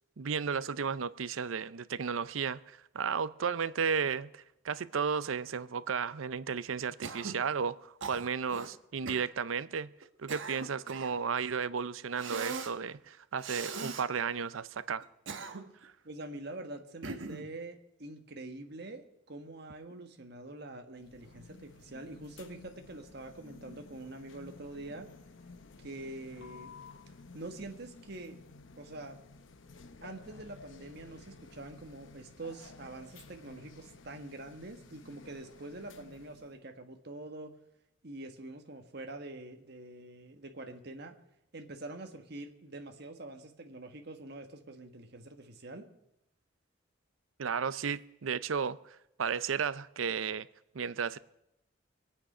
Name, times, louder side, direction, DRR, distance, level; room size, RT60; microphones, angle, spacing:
voice 1, 0.2-9.9 10.2-15.1 15.8-15.9 47.4-50.5 50.7-51.2, right 6 dB, 85° right, 0.6 m, -34 dB
Cough, 7.0-7.4 8.0-8.7 9.1-9.3 10.0-11.2 12.2-12.8 13.4-14.1 15.0-15.8 17.0-17.5, right 4 dB, 70° right, 1.2 m, -40 dB
voice 2, 16.0-25.1 25.8-26.7 27.3-28.4 28.8-29.2 30.0-37.5 38.0-41.1 41.5-45.9, right 2 dB, 55° right, 1.5 m, -45 dB
sound 1, 20.9-36.6, left 3 dB, 70° left, 0.9 m, -53 dB
23.0 x 8.9 x 5.6 m
head